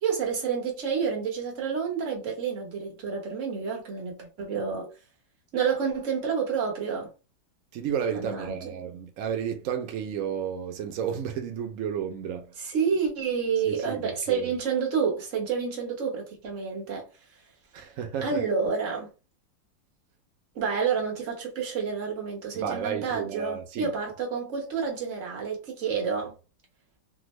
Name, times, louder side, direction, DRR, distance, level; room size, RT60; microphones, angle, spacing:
voice 1, 0.0-4.9 5.5-7.1 8.1-8.7 12.6-17.1 18.2-19.1 20.5-26.3, right 6 dB, 50° right, 1.2 m, -29 dB
voice 2, 7.7-12.5 13.7-14.5 17.7-18.4 22.5-23.9, right 8 dB, 85° right, 0.7 m, -32 dB
3.5 x 2.1 x 3.0 m
omnidirectional pair, 2.0 m